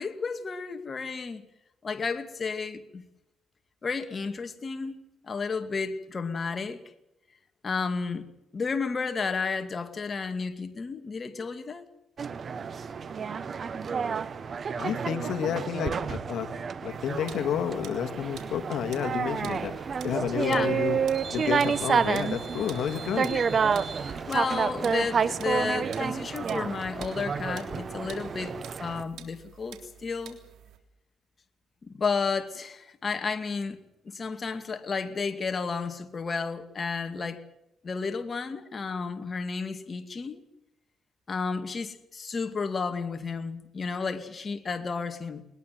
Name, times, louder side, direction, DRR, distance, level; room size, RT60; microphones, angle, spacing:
voice 1, 0.0-1.4 1.8-3.0 3.8-5.0 5.2-6.8 7.6-8.3 8.5-11.9 20.4-20.8 23.3-23.5 23.9-28.5 28.8-30.4 31.8-37.4 37.8-40.4 41.3-45.5, left 4 dB, 35° left, 2.3 m, -32 dB
sound 1, 12.2-29.0, right 6 dB, 45° right, 1.2 m, -30 dB
voice 2, 14.8-16.5 16.8-19.7 20.0-21.0 21.3-23.3, left 9 dB, 70° left, 2.0 m, -30 dB
sound 2, 16.9-30.8, right 10 dB, 80° right, 3.4 m, -50 dB
sound 3, 19.3-25.7, left 1 dB, 10° left, 4.3 m, -49 dB
21.0 x 20.0 x 7.7 m
cardioid pair, 90°, 0 cm